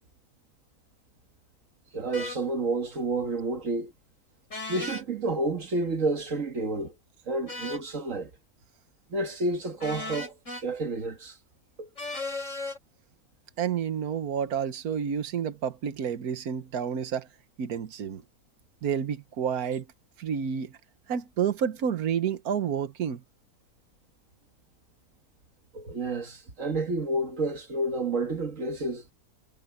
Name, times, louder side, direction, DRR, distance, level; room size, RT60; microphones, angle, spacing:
voice 1, 1.9-3.9 4.7-6.9 7.3-8.3 9.1-11.4 11.8-11.9 25.7-29.0, right 2 dB, 60° right, 1.9 m, -30 dB
sound 1, 2.1-2.4 4.5-5.0 7.5-7.9 9.8-10.6 12.0-12.8, left 2 dB, 55° left, 6.3 m, -36 dB
voice 2, 13.6-17.3 17.6-18.2 18.8-19.8 20.2-20.8 21.1-23.2, right 8 dB, 75° right, 1.6 m, -29 dB
omnidirectional pair, 1.6 m